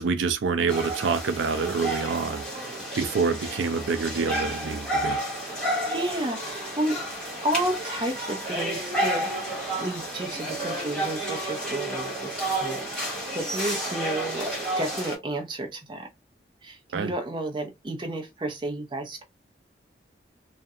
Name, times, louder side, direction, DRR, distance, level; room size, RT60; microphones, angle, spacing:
voice 1, 0.0-2.4 3.0-5.2 16.9-17.1, right 5 dB, 85° right, 0.4 m, -26 dB
sound 1, 0.7-15.2, right 1 dB, 5° left, 1.0 m, -31 dB
voice 2, 5.9-6.9 7.4-9.3 9.8-16.1 16.6-19.2, right 1 dB, 25° right, 0.5 m, -31 dB
2.4 x 2.1 x 2.6 m
head